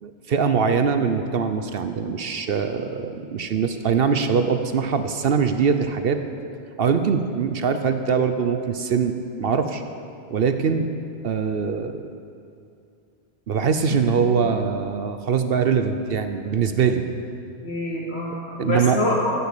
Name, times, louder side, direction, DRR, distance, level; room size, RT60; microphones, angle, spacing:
voice 1, 0.0-6.2 6.8-9.8 10.3-10.9 11.2-12.1 13.5-17.0 18.3-19.0, right 6 dB, 60° right, 8 dB, 0.9 m, -22 dB
voice 2, 13.9-14.2 17.6-19.3, left 2 dB, 65° left, -4 dB, 2.7 m, -26 dB
14.0 x 6.9 x 8.3 m, 2.5 s
omnidirectional pair, 1.2 m